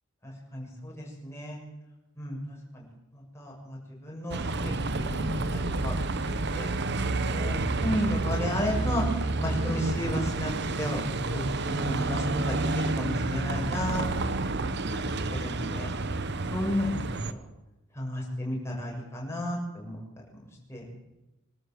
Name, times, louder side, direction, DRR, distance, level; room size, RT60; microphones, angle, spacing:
voice 1, 0.2-1.6 2.2-2.4 2.7-2.8 3.1-6.0 6.5-6.7 7.3-9.0 9.4-10.5 10.8-11.0 11.3-14.0 14.4-14.5 14.9-15.9 16.5-17.0 18.0-20.0 20.3-20.4 20.7-21.0, left 1 dB, 10° left, -2 dB, 7.2 m, -33 dB
Bus, 4.3-17.3, right 2 dB, 50° right, 1.1 m, -29 dB
25.5 x 13.0 x 7.8 m, 0.98 s
head